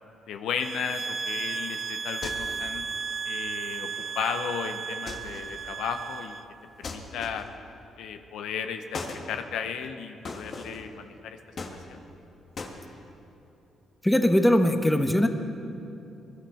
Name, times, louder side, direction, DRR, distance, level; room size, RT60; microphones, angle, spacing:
voice 1, 0.3-2.8 3.2-3.9 4.1-6.4 6.8-7.5 8.0-11.4 11.9-12.0, left 7 dB, 80° left, 7 dB, 0.8 m, -34 dB
sound 1, 0.6-6.4, right 6 dB, 45° right, 0.4 m, -34 dB
sound 2, 2.2-2.7 5.1-5.5 6.8-7.6 8.9-9.3 10.2-10.9 11.6-12.2 12.6-12.8, left 3 dB, 50° left, 1.6 m, -38 dB
voice 2, 14.0-15.3, left 1 dB, 10° left, 7 dB, 1.0 m, -21 dB
21.0 x 12.0 x 4.3 m, 2.8 s
cardioid pair, 75°, 0 cm